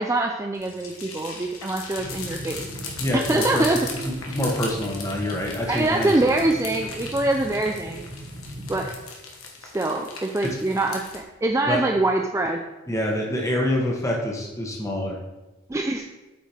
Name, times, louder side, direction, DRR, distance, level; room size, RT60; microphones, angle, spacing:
voice 1, 0.0-2.7 3.1-3.8 5.7-8.1 8.7-8.9 9.6-12.6 15.7-16.1, right 2 dB, 15° right, 2 dB, 0.3 m, -24 dB
sound 1, 0.5-11.2, left 4 dB, 80° left, 1.3 m, -38 dB
sound 2, 2.0-8.9, equal, 50° right, 1.1 m, -39 dB
voice 2, 3.0-6.1 10.4-10.6 11.7-11.8 12.9-15.2, left 1 dB, 15° left, 0 dB, 1.1 m, -26 dB
8.2 x 4.7 x 4.4 m, 1.1 s
head